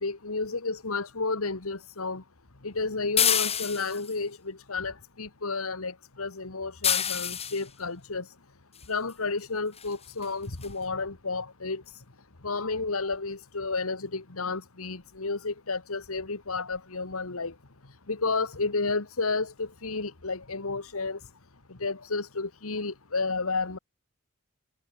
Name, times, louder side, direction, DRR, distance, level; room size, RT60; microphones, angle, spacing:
voice 1, 0.0-2.2 2.6-8.3 8.9-11.8 12.4-17.5 18.1-21.2 21.7-23.8, left 3 dB, 85° left, 1.8 m, -31 dB
sound 1, 3.2-4.1 6.8-7.6 9.1-9.2 9.8-9.9 10.2-10.3 10.6-10.7, left 8 dB, 30° left, 2.9 m, -26 dB
head